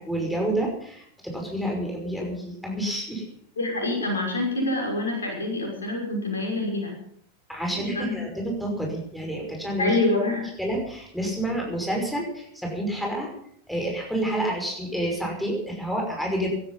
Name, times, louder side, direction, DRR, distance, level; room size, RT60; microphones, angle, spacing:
voice 1, 0.0-3.2 7.5-9.9 10.6-13.3 13.7-16.5, right 1 dB, ahead, 0 dB, 5.7 m, -29 dB
voice 2, 3.6-6.9 7.7-8.1 9.8-10.5, left 2 dB, 70° left, 0 dB, 5.9 m, -26 dB
18.0 x 13.0 x 5.8 m, 0.68 s
figure-of-eight pair, 90°, 0 cm